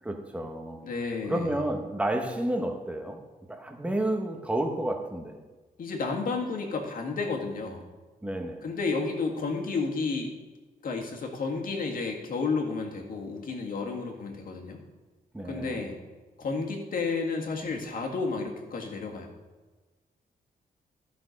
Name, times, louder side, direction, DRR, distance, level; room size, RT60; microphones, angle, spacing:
voice 1, 0.0-0.9 1.3-5.4 8.2-8.7 15.3-15.9, right 1 dB, 10° right, 4 dB, 1.0 m, -31 dB
voice 2, 0.8-1.6 5.8-7.9 8.6-10.3 10.8-14.8 15.4-16.0 16.4-19.3, left 4 dB, 65° left, 1 dB, 1.8 m, -31 dB
14.0 x 6.1 x 5.2 m, 1.3 s
wide cardioid pair, 170°, 16 cm